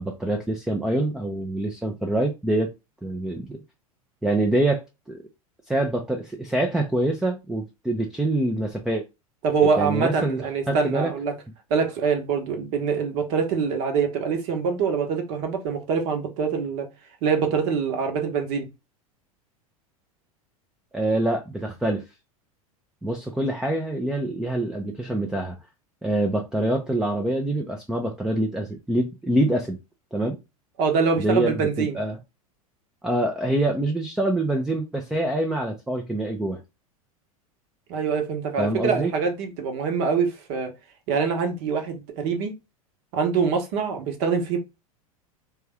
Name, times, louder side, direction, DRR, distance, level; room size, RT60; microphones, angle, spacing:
voice 1, 0.0-2.7 3.0-3.6 4.2-5.2 5.7-9.0 9.8-11.1 20.9-22.0 23.0-25.6 26.0-29.8 30.1-30.4 31.2-32.2 33.0-36.6 38.6-39.1, right 1 dB, 5° right, 0.4 m, -25 dB
voice 2, 9.4-11.3 11.7-16.9 17.2-18.7 30.8-32.0 37.9-40.7 41.1-42.5 43.1-44.6, right 5 dB, 50° right, 1.0 m, -24 dB
3.3 x 2.3 x 3.3 m
figure-of-eight pair, 85°, 19 cm